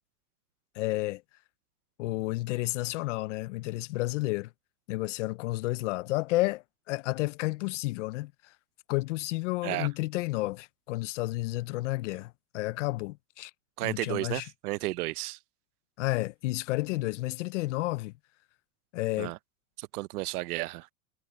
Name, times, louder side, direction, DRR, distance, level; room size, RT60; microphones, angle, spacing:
voice 1, 0.7-1.2 2.0-4.5 4.9-8.5 8.9-13.5 13.8-14.5 16.0-18.1 18.9-19.3, left 19 dB, 50° left, 0.5 m, -31 dB
voice 2, 13.8-15.4 19.2-19.4 19.8-20.9, right 19 dB, 70° right, 0.7 m, -33 dB
supercardioid pair, 155°, 46 cm